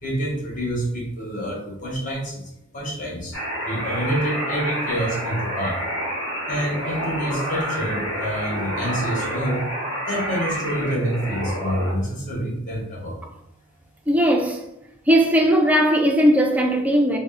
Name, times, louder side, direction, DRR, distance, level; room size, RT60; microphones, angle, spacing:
voice 1, 0.0-2.4 2.7-3.4 3.6-5.8 6.5-9.7 10.1-13.2, right 1 dB, 35° left, 0.9 m, -27 dB
sound 1, 3.3-11.9, equal, 70° left, 1.2 m, -28 dB
voice 2, 14.1-14.6 15.1-17.2, equal, 5° right, 0.3 m, -18 dB
3.5 x 2.1 x 3.4 m
head